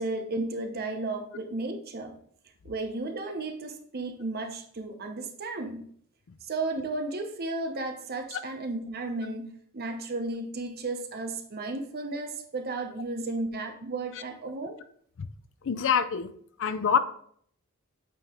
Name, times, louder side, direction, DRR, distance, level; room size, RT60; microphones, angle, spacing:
voice 1, 0.0-2.1 2.6-5.9 6.4-14.8, right 2 dB, 45° right, 5 dB, 0.8 m, -34 dB
voice 2, 15.6-16.3 16.6-17.0, left 7 dB, 60° left, 11 dB, 0.5 m, -25 dB
8.5 x 3.0 x 3.7 m, 0.62 s
head